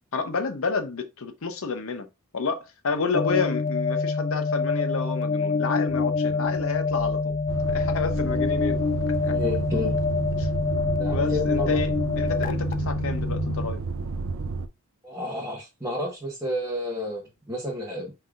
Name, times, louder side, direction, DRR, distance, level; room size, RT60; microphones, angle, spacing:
voice 1, 0.1-2.1 2.3-7.4 7.7-8.8 9.2-9.4 10.4-10.5 11.1-13.8, left 4 dB, 65° left, 0.8 m, -30 dB
sound 1, 3.1-13.7, left 4 dB, 40° left, 0.3 m, -26 dB
sound 2, 5.9-11.1, equal, 30° right, 1.3 m, -46 dB
sound 3, 7.5-14.7, right 4 dB, 60° right, 0.5 m, -31 dB
voice 2, 9.3-10.0 11.0-11.8 15.0-18.1, left 1 dB, 10° right, 1.2 m, -31 dB
5.4 x 3.6 x 2.4 m
head